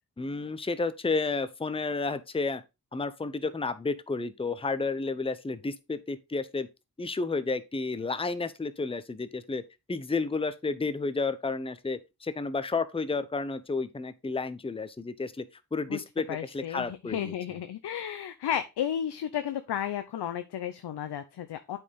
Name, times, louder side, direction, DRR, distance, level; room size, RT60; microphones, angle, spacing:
voice 1, 0.2-2.6 2.9-6.7 7.0-9.6 9.9-15.4 15.7-17.3, left 3 dB, 15° left, 0.7 m, -31 dB
voice 2, 16.3-21.8, left 9 dB, 80° left, 0.7 m, -33 dB
8.2 x 4.4 x 3.6 m
cardioid pair, 50°, 39 cm